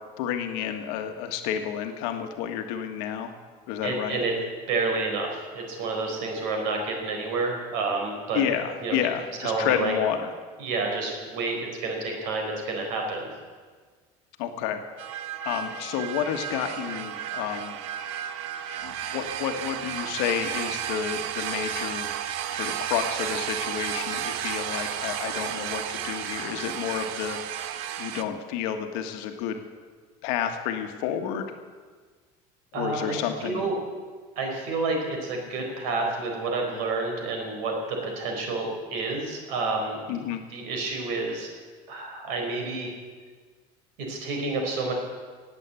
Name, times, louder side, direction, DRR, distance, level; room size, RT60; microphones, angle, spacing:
voice 1, 0.2-3.3 3.7-4.2 8.3-10.3 14.4-14.8 15.4-17.8 18.8-22.1 22.5-27.7 28.0-29.7 30.2-31.5 32.7-33.6 40.1-40.4, left 9 dB, 75° left, 6 dB, 1.6 m, -30 dB
voice 2, 3.8-4.3 4.7-8.4 8.8-9.0 9.4-9.9 10.6-13.3 32.7-33.8 34.4-40.0 40.5-41.5 41.9-42.9 44.1-44.9, right 3 dB, 65° right, 2 dB, 4.3 m, -29 dB
sound 1, 15.0-28.2, right 10 dB, 80° right, 1.0 m, -33 dB
18.0 x 8.3 x 8.3 m, 1.5 s
cardioid pair, 180°, 14 cm